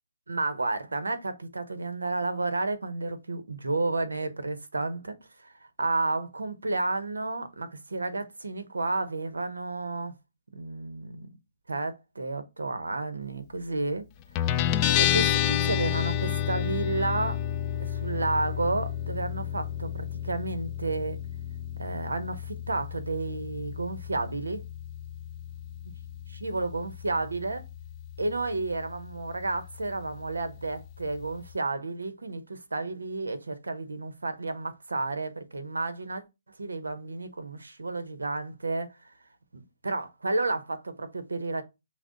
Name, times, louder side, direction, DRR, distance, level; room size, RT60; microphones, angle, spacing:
voice 1, 0.3-5.2 5.8-10.1 10.5-11.3 11.7-14.1 15.0-17.4 17.8-21.2 21.8-24.6 26.3-27.6 28.2-36.2 36.6-38.9 39.5-41.6, right 2 dB, 90° right, 0.7 m, -31 dB
Guitar, 14.4-31.6, left 11 dB, 30° left, 0.3 m, -31 dB
5.9 x 2.0 x 3.7 m
hypercardioid pair, 140°, 0 cm